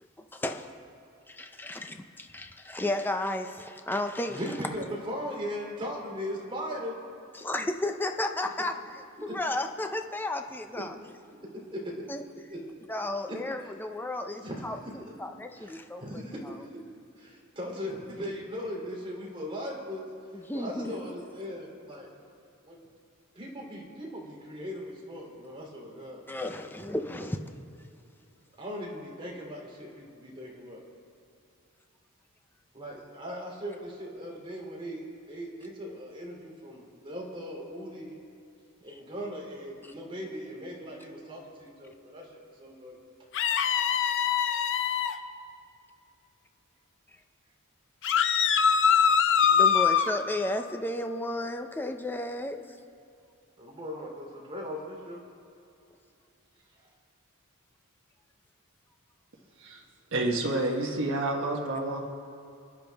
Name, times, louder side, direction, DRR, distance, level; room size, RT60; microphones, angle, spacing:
voice 1, 0.2-0.7 1.3-4.9 7.3-11.2 12.1-12.5 12.9-16.7 20.3-21.3 26.3-27.4 38.9-39.0 39.8-39.9 49.5-52.6, left 1 dB, 10° left, 5 dB, 0.6 m, -34 dB
voice 2, 4.3-6.9 9.3-9.4 10.8-10.9 11.5-12.1 12.5-12.6 12.9-13.7 14.4-15.1 15.5-15.7 16.0-16.4 16.7-16.8 17.2-20.0 20.3-22.1 22.6-22.8 23.3-26.2 28.6-30.8 32.7-38.2 38.8-43.0 53.6-55.2, equal, 25° right, -2 dB, 3.0 m, -39 dB
sound 1, 43.3-45.1 48.0-50.1, left 7 dB, 60° left, 0.6 m, -23 dB
voice 3, 60.1-62.0, right 2 dB, 60° right, -1 dB, 1.3 m, -29 dB
27.5 x 10.5 x 3.5 m, 2.6 s
head